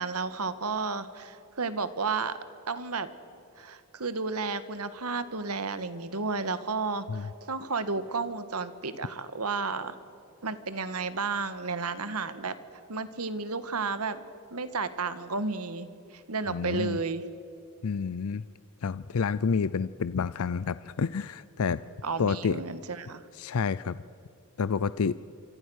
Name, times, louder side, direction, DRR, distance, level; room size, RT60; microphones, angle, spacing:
voice 1, 0.0-2.4 2.7-3.1 3.6-10.0 10.4-12.5 12.9-14.2 14.5-17.2 22.0-23.2, right 4 dB, 90° right, 12 dB, 1.6 m, -32 dB
voice 2, 16.5-17.0 17.8-18.4 18.8-21.8 22.2-22.6 23.3-24.0 24.6-25.2, left 5 dB, 75° left, 16 dB, 0.5 m, -29 dB
27.0 x 25.5 x 6.4 m, 2.6 s
head